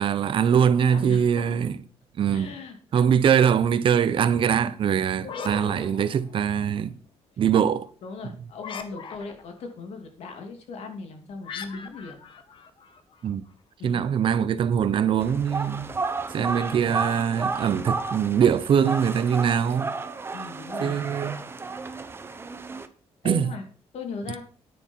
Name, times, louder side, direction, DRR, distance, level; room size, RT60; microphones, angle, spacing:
voice 1, 0.0-1.8 2.2-2.5 2.9-7.0 7.4-7.9 13.2-13.4 13.8-15.9 16.3-20.0 20.8-21.4 23.2-23.5, right 8 dB, 50° right, 0.9 m, -22 dB
voice 2, 0.8-1.8 2.3-3.0 8.0-12.2 13.8-14.1 16.4-16.6 20.3-21.0 23.2-23.7 23.9-24.4, left 4 dB, 70° left, 2.8 m, -38 dB
sound 1, 5.2-6.7 8.6-9.6 11.4-13.3, left 6 dB, 50° left, 1.4 m, -39 dB
sound 2, 15.2-22.9, right 4 dB, 20° right, 1.0 m, -32 dB
9.7 x 9.6 x 4.6 m
cardioid pair, 145°, 11 cm